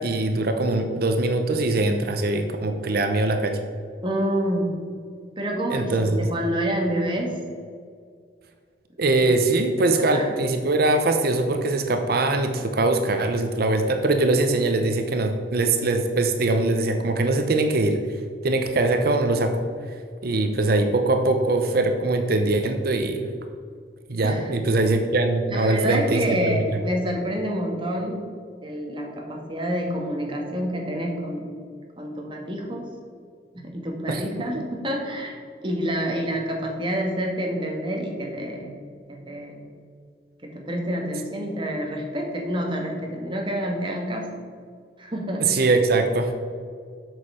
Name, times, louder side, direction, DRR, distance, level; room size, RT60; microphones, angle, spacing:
voice 1, 0.0-3.6 5.7-6.2 9.0-18.0 18.4-19.6 20.2-23.3 24.1-26.6 34.1-34.2 34.5-34.6 45.4-46.4, right 2 dB, 60° right, 6 dB, 0.7 m, -22 dB
voice 2, 4.0-4.9 5.4-7.4 10.1-10.3 24.2-24.5 25.5-28.3 28.6-31.5 32.0-32.9 33.6-35.4 35.6-38.8 39.1-39.7 40.4-44.3 45.0-45.5, equal, 30° right, 0 dB, 1.6 m, -28 dB
7.9 x 6.4 x 5.6 m, 2.1 s
head